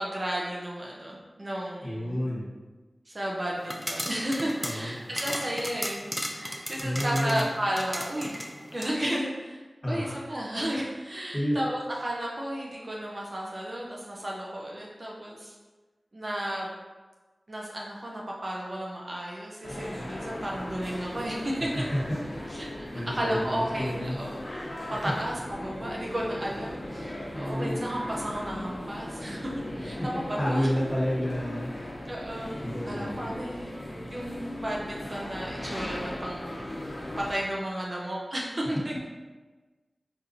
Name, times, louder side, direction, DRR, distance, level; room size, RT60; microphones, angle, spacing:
voice 1, 0.0-2.2 3.1-8.4 8.7-15.5 16.1-16.7 17.5-21.7 22.6-24.4 25.0-29.5 29.8-30.7 32.1-33.7 34.1-36.8 37.2-39.1, right 1 dB, 45° right, -3 dB, 0.5 m, -33 dB
voice 2, 1.8-2.5 4.6-5.1 6.8-7.4 9.8-10.2 11.3-11.6 21.7-22.2 22.5-22.6 22.9-24.2 24.9-25.1 27.3-27.8 30.4-31.8 32.6-33.3, equal, 25° left, -7 dB, 1.3 m, -30 dB
sound 1, 3.6-8.9, equal, 5° left, 0.4 m, -36 dB
sound 2, 19.6-37.3, left 1 dB, 50° left, 1.0 m, -38 dB
4.2 x 2.6 x 2.6 m, 1.3 s
wide cardioid pair, 70°, 0 cm